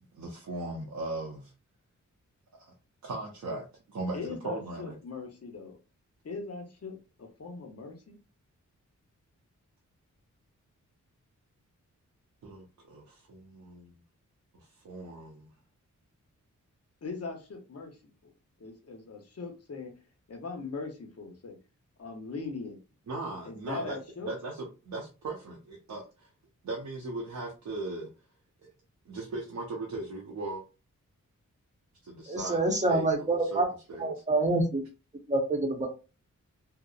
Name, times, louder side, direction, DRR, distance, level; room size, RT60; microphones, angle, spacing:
voice 1, 0.1-1.5 2.6-2.7 3.0-4.9 12.4-13.9 14.5-15.5 23.1-26.3 26.6-28.1 28.6-28.7 29.1-30.6 32.0-33.6 33.9-34.2, right 2 dB, 65° right, -2 dB, 0.7 m, -38 dB
voice 2, 4.1-5.8 6.2-8.2 17.0-18.3 18.6-19.9 20.3-21.5 22.0-22.8 23.4-24.4, left 4 dB, 50° left, 3 dB, 0.8 m, -40 dB
voice 3, 32.3-33.7 34.0-34.8 35.3-35.9, right 2 dB, 25° right, 3 dB, 0.8 m, -26 dB
2.7 x 2.0 x 2.4 m, 0.31 s
cardioid pair, 70°, 31 cm